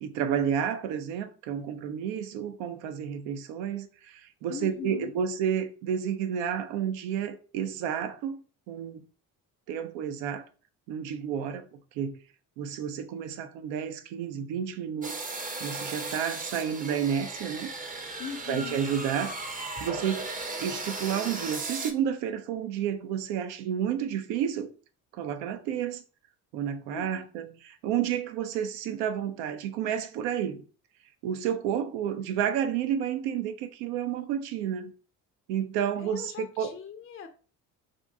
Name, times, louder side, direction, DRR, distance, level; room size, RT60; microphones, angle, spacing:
voice 1, 0.0-8.4 8.7-9.0 9.7-10.4 10.9-11.7 11.9-12.2 12.6-15.3 15.6-17.7 18.5-19.4 19.8-20.3 20.6-24.7 25.1-26.0 26.5-30.6 31.2-34.9 35.5-36.7, right 8 dB, 65° right, 0.6 m, -31 dB
voice 2, 4.5-5.2 18.2-18.9 26.9-27.2 36.0-37.3, left 7 dB, 30° left, 0.6 m, -40 dB
sound 1, 15.0-21.9, right 3 dB, 20° right, 0.7 m, -36 dB
2.7 x 2.5 x 3.5 m
figure-of-eight pair, 50°, 47 cm